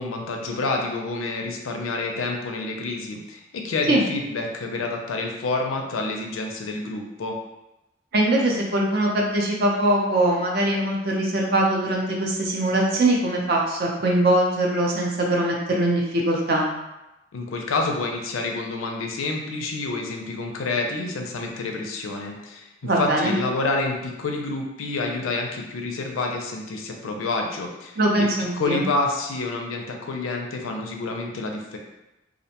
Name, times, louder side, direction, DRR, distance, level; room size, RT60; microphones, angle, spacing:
voice 1, 0.0-7.4 17.3-22.7 23.0-28.3 28.6-31.8, left 3 dB, 90° left, 2 dB, 0.4 m, -28 dB
voice 2, 8.1-16.7 22.8-23.3 28.0-28.8, right 1 dB, 50° right, -1 dB, 0.5 m, -22 dB
2.4 x 2.1 x 2.8 m, 0.95 s
head